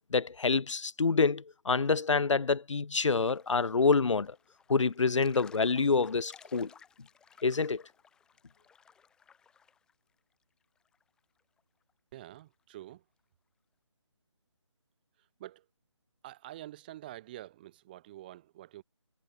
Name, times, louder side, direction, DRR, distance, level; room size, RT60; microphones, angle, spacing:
voice 1, 0.1-4.3 4.7-6.7 7.4-7.8, left 4 dB, 80° left, 0.7 m, -27 dB
sound 1, 3.1-9.9 10.2-10.3 10.6-11.6 11.9-12.0 12.4-12.5 12.7-12.9, left 6 dB, 5° left, 3.1 m, -58 dB
voice 2, 12.1-13.0 15.4-15.6 16.2-18.8, right 14 dB, 20° right, 1.9 m, -47 dB
figure-of-eight pair, 160°, 16 cm